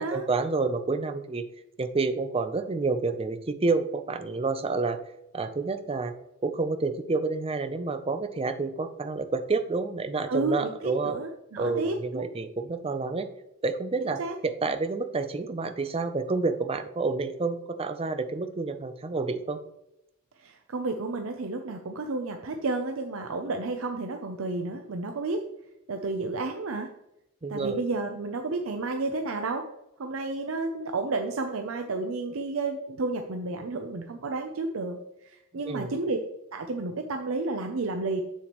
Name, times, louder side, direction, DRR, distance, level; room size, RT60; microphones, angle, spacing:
voice 1, 0.0-1.4 1.8-5.0 5.3-6.1 6.4-11.1 11.6-13.3 13.6-19.6 27.4-27.8 35.6-35.9, right 3 dB, 30° right, 9 dB, 0.5 m, -29 dB
voice 2, 10.3-12.3 14.0-14.4 20.4-25.4 25.9-26.9 27.5-29.7 30.0-36.2 36.5-38.2, right 3 dB, 80° right, 5 dB, 0.6 m, -31 dB
7.1 x 6.9 x 3.0 m, 0.85 s
head